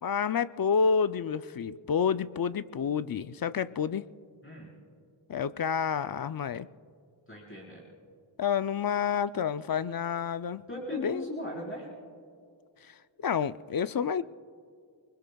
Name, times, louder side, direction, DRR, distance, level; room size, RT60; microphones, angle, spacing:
voice 1, 0.0-4.1 5.3-6.7 8.4-10.6 10.9-11.3 12.9-13.0 13.2-14.2, left 6 dB, 50° left, 14 dB, 0.5 m, -29 dB
voice 2, 4.4-4.7 7.3-7.8 10.7-11.9, equal, 25° left, -5 dB, 4.3 m, -39 dB
29.0 x 21.0 x 2.3 m, 2.3 s
wide cardioid pair, 85°, 46 cm